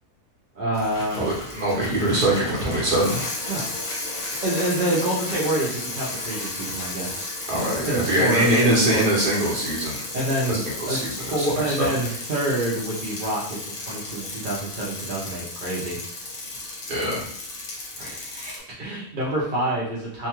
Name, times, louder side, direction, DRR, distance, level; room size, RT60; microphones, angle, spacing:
voice 1, 0.5-1.3 3.5-3.7 4.4-7.3 7.8-9.0 10.1-10.6 10.9-16.0 18.0-20.3, right 1 dB, 60° right, -6 dB, 0.5 m, -27 dB
Bicycle, 0.7-18.6, left 2 dB, 60° left, 1.0 m, -34 dB
voice 2, 1.1-3.2 7.5-10.1 10.5-11.9 16.9-17.3, right 1 dB, 40° right, -6 dB, 1.0 m, -23 dB
2.7 x 2.3 x 2.9 m, 0.69 s
omnidirectional pair, 1.7 m